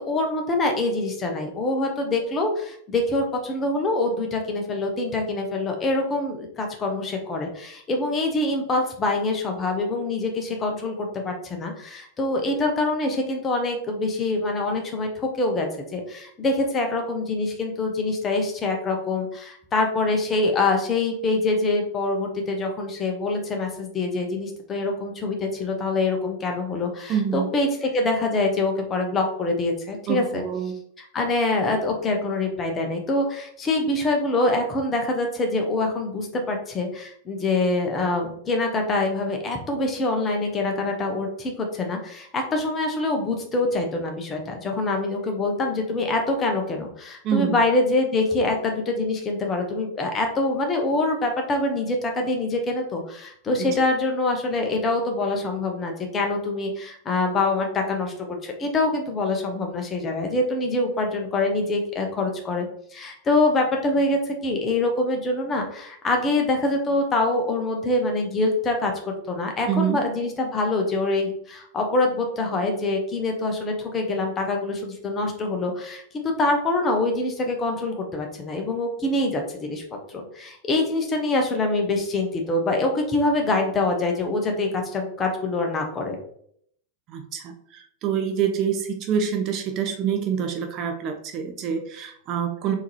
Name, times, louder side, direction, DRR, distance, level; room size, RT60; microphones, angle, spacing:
voice 1, 0.0-30.4 31.1-62.7 62.9-79.8 80.1-86.2, left 2 dB, 25° left, 3 dB, 0.8 m, -25 dB
voice 2, 27.1-27.5 30.1-30.8 47.2-47.6 53.6-53.8 69.7-70.0 87.1-92.7, right 8 dB, 35° right, 5 dB, 0.4 m, -26 dB
3.7 x 2.7 x 3.0 m, 0.65 s
figure-of-eight pair, 90°, 0 cm